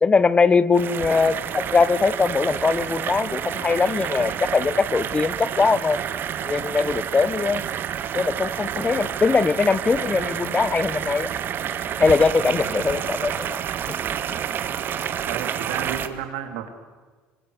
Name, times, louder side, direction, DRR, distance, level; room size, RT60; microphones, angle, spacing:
voice 1, 0.0-6.0 6.4-7.6 8.1-11.3 12.0-13.6, left 4 dB, 25° left, 18 dB, 0.9 m, -21 dB
sound 1, 0.7-16.1, right 9 dB, 50° right, 1.7 m, -29 dB
voice 2, 12.6-13.0 15.3-16.7, right 9 dB, 85° right, 7 dB, 3.2 m, -33 dB
25.5 x 23.5 x 8.1 m, 1.4 s
supercardioid pair, 95°, 5 cm